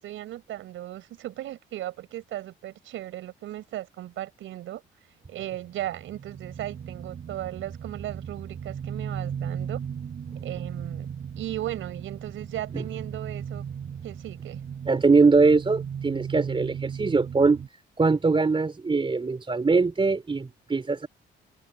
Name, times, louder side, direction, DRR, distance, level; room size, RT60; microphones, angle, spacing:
voice 1, 0.0-4.8 5.3-9.8 10.4-11.1 11.4-13.6 14.0-14.6, right 13 dB, 85° right, 5.4 m, -36 dB
sound 1, 5.4-17.7, right 7 dB, 55° right, 4.8 m, -36 dB
voice 2, 14.9-17.6 18.0-21.1, right 4 dB, 25° right, 3.6 m, -22 dB
cardioid pair, 90°, 20 cm